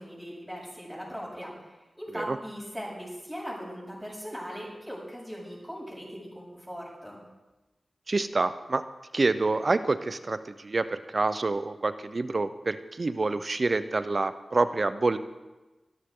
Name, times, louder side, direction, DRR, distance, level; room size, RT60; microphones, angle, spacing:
voice 1, 0.0-7.2, equal, ahead, -8 dB, 7.1 m, -39 dB
voice 2, 8.1-8.8 9.1-15.2, right 3 dB, 50° right, 12 dB, 0.8 m, -27 dB
23.0 x 13.5 x 3.9 m, 1.1 s
wide cardioid pair, 70°, 0 cm